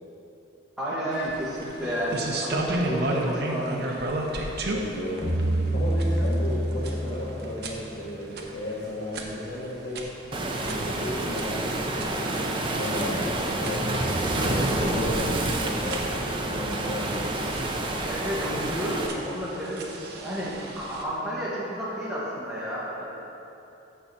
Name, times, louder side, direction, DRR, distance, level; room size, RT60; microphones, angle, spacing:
voice 1, 0.8-4.0 18.0-23.0, equal, 5° right, -9 dB, 2.0 m, -31 dB
sound 1, 1.1-21.0, right 2 dB, 50° right, 0.8 m, -35 dB
voice 2, 4.7-5.3 5.7-10.1 10.6-14.0 14.4-16.0 16.4-17.3, left 1 dB, 80° left, -8 dB, 1.5 m, -34 dB
sound 2, 5.2-7.6, right 1 dB, 25° left, 1.5 m, -26 dB
Waves surf, 10.3-19.1, right 1 dB, 25° right, 0.6 m, -28 dB
6.8 x 5.5 x 7.2 m, 2.9 s
head